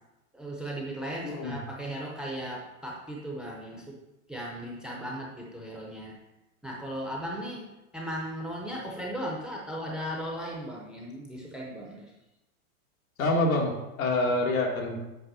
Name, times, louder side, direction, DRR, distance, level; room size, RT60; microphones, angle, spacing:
voice 1, 0.3-4.0 4.3-6.1 6.6-7.7 7.9-12.1, equal, ahead, -2 dB, 0.6 m, -37 dB
voice 2, 1.2-1.6 13.2-15.0, left 2 dB, 80° left, 1 dB, 2.0 m, -26 dB
8.1 x 3.6 x 6.0 m, 0.98 s
supercardioid pair, 155°, 41 cm